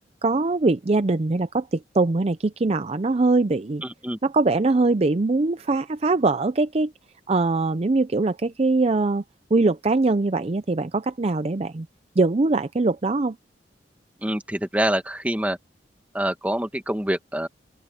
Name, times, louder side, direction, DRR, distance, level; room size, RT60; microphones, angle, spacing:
voice 1, 0.2-3.8 4.2-6.9 7.3-9.2 9.5-11.9 12.2-13.4, right 3 dB, 35° right, 0.5 m, -22 dB
voice 2, 3.8-4.2 14.2-15.6 16.1-17.5, right 1 dB, 10° right, 1.9 m, -26 dB
open air
head